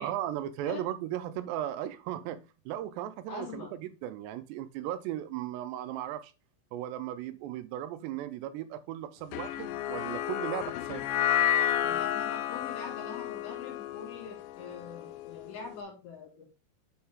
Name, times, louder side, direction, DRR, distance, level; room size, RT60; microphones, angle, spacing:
voice 1, 0.0-6.3 6.7-11.1, right 12 dB, 85° right, 2.7 m, -36 dB
voice 2, 3.3-3.7 11.8-16.4, left 5 dB, 55° left, 3.3 m, -44 dB
sound 1, 9.3-15.7, left 10 dB, 90° left, 2.8 m, -31 dB
6.6 x 4.3 x 3.6 m
omnidirectional pair, 4.9 m